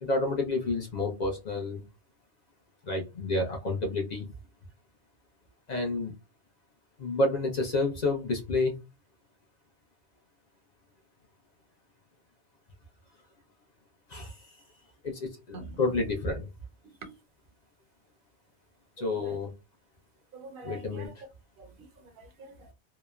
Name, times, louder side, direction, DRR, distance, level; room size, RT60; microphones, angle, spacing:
voice 1, 0.0-1.8 2.8-4.3 5.7-6.1 7.0-8.8 14.1-14.6 15.0-16.5 19.0-19.5 20.6-21.2, left 2 dB, 50° left, 1 dB, 0.6 m, -30 dB
voice 2, 16.8-17.2 19.0-19.4 20.3-21.1 21.6-22.7, right 2 dB, 60° right, 7 dB, 0.7 m, -46 dB
2.9 x 2.0 x 2.2 m, 0.27 s
omnidirectional pair, 1.1 m